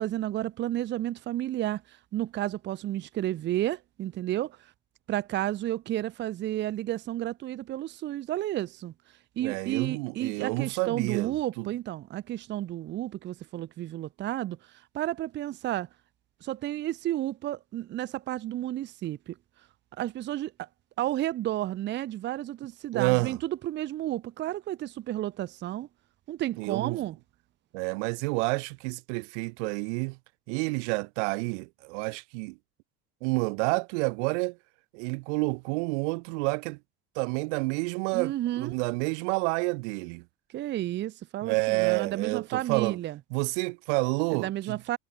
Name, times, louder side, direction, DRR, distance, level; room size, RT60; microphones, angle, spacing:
voice 1, 0.0-4.6 5.1-8.9 9.4-14.6 14.9-15.9 16.4-19.3 20.0-20.7 21.0-25.9 26.3-27.2 38.1-38.8 40.5-43.2 44.3-45.0, right 13 dB, 30° right, 0.8 m, -32 dB
voice 2, 9.4-11.7 22.9-23.4 26.6-27.1 27.7-30.2 30.5-32.6 33.2-34.6 34.9-36.8 37.2-40.2 41.4-43.0 43.3-44.8, right 32 dB, 90° right, 2.2 m, -29 dB
cardioid pair, 160°, 34 cm